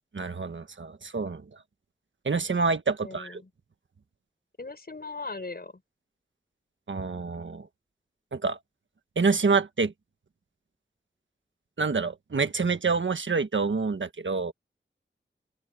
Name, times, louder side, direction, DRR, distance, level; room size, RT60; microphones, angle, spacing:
voice 1, 0.1-1.4 2.2-3.4 6.9-7.7 8.3-8.6 9.1-9.9 11.8-14.5, right 4 dB, 85° right, 1.4 m, -27 dB
voice 2, 3.0-3.5 4.6-5.8, left 3 dB, 55° left, 5.6 m, -39 dB
open air
wide cardioid pair, 60°, 19 cm